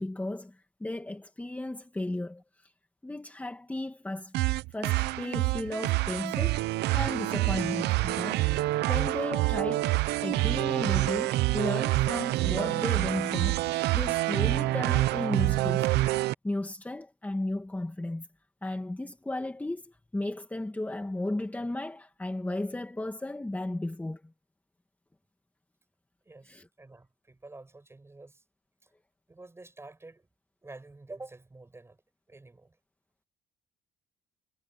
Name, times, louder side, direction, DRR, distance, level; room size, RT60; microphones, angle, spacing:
voice 1, 0.0-2.7 3.0-4.3 4.7-6.6 6.9-8.5 8.9-9.9 10.2-13.7 13.9-15.9 16.4-18.3 18.6-24.3 26.4-26.6, left 2 dB, 10° left, 2.1 m, -34 dB
sound 1, 4.3-16.3, right 18 dB, 80° right, 0.7 m, -27 dB
voice 2, 26.3-28.4 28.8-28.9 29.3-30.3 30.6-32.0 32.3-32.8, right 2 dB, 15° right, 7.3 m, -48 dB
cardioid pair, 110°, 17 cm